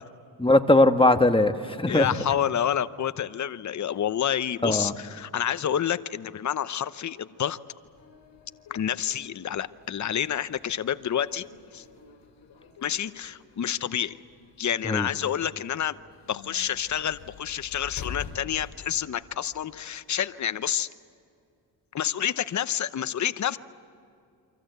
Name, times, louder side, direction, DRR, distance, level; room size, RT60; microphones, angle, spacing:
voice 1, 0.4-2.1 4.6-4.9 14.8-15.1, left 2 dB, 10° left, 7 dB, 1.4 m, -20 dB
voice 2, 1.9-7.6 8.7-11.5 11.7-11.8 12.8-14.2 14.6-15.9 16.3-20.9 21.9-23.6, left 9 dB, 40° left, 13 dB, 0.9 m, -28 dB
sound 1, 7.8-19.8, left 7 dB, 65° left, 6.6 m, -47 dB
29.0 x 24.5 x 8.0 m, 2.4 s
cardioid pair, 95°, 44 cm